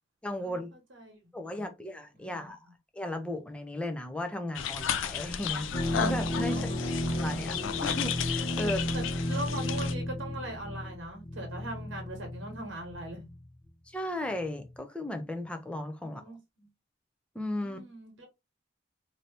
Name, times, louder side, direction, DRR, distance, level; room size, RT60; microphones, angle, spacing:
voice 1, 0.2-0.7 1.3-2.6 2.9-6.7 7.2-8.8 13.9-16.2 17.3-17.8, left 1 dB, 5° left, 0.4 m, -36 dB
voice 2, 2.1-2.7 6.5-6.9 8.6-13.3 16.0-16.7 17.6-18.3, right 1 dB, 75° right, 1.1 m, -41 dB
sound 1, 4.5-9.9, left 8 dB, 85° left, 0.4 m, -34 dB
sound 2, 5.7-13.7 14.3-14.7, left 1 dB, 45° left, 0.9 m, -33 dB
2.7 x 2.7 x 3.3 m
head